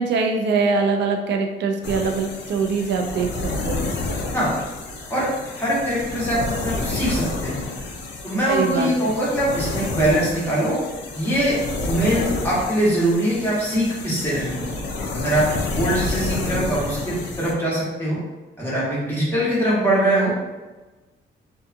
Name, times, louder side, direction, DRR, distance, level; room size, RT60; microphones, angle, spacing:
voice 1, 0.0-3.9 8.5-9.1, right 4 dB, 65° right, 3 dB, 0.4 m, -23 dB
sound 1, 1.8-17.5, left 3 dB, 65° left, 0.5 m, -29 dB
voice 2, 5.6-7.6 8.2-10.8 11.1-11.6 11.9-14.6 15.1-15.4 15.8-18.2 18.6-20.3, right 1 dB, 10° left, -8 dB, 1.2 m, -22 dB
2.7 x 2.3 x 2.4 m, 1.2 s
cardioid pair, 90°, 20 cm